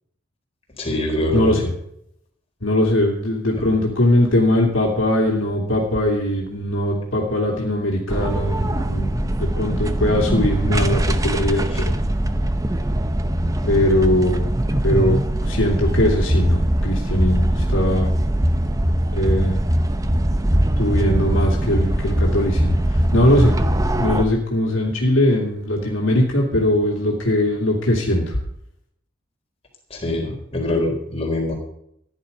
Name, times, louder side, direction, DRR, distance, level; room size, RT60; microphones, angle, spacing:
voice 1, 0.8-1.6 3.5-3.6 29.9-31.5, left 1 dB, 30° left, 0 dB, 4.3 m, -24 dB
voice 2, 1.3-1.8 2.6-11.9 13.6-14.5 14.8-18.1 19.1-19.6 20.8-23.5 24.0-28.4, left 1 dB, 70° left, -1 dB, 2.8 m, -20 dB
sound 1, 8.1-24.2, right 1 dB, 15° right, 0.9 m, -21 dB
15.0 x 10.5 x 5.4 m, 0.73 s
head